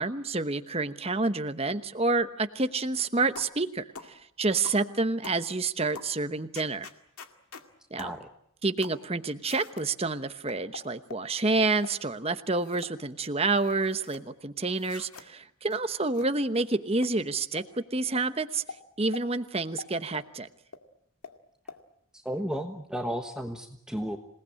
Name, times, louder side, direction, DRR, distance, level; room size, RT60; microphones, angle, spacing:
voice 1, 0.0-6.9 7.9-8.1 8.6-18.6 19.0-20.5, right 3 dB, 25° right, 10 dB, 1.0 m, -28 dB
sound 1, 3.4-3.6 3.9-4.1 4.6-4.8 5.2-5.4 5.9-6.1 6.5-7.7 8.0-8.2 8.8-9.0 9.5-9.9 10.5-11.3 11.8-12.0 12.5-12.9 13.2-14.2 14.7-15.3 15.7-15.8 16.1-16.3 16.5-16.7 17.0-17.1 17.6-17.7 18.2-18.3 18.7-18.8 19.1-19.2 19.8-20.3 20.7-20.8 21.2-21.4 21.7-21.8, left 5 dB, 90° left, 2.2 m, -44 dB
voice 2, 8.0-8.3 22.1-24.2, equal, 5° right, 4 dB, 1.2 m, -33 dB
27.5 x 19.0 x 8.7 m, 0.74 s
head